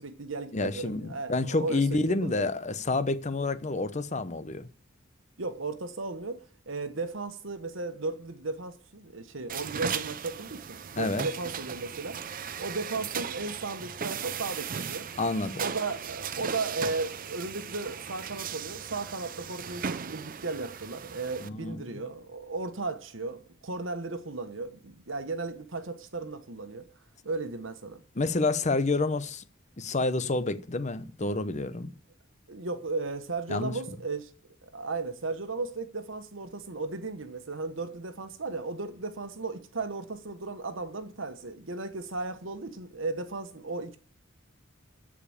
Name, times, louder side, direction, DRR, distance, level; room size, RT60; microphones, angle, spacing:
voice 1, 0.0-2.5 5.4-12.2 12.6-15.1 15.6-26.8 27.2-28.0 31.8-31.9 32.5-34.3 34.6-44.0, right 3 dB, 70° right, 1.3 m, -35 dB
voice 2, 0.5-4.7 11.0-11.3 15.2-15.6 21.4-21.8 28.2-29.4 29.8-31.9 33.5-33.7, left 3 dB, 35° left, 0.8 m, -29 dB
sound 1, 9.5-21.5, right 7 dB, 45° right, 0.6 m, -37 dB
13.5 x 5.1 x 8.8 m
head